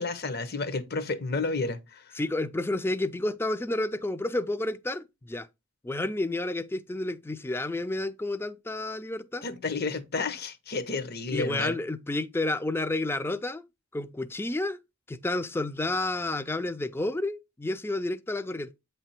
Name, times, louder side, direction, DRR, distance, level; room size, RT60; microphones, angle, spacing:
voice 1, 0.0-2.1 9.4-11.8, left 3 dB, 55° left, 0.9 m, -31 dB
voice 2, 2.2-5.5 5.8-9.4 11.3-13.6 13.9-14.8 15.1-18.8, left 2 dB, 10° left, 0.4 m, -30 dB
8.4 x 3.3 x 4.3 m
head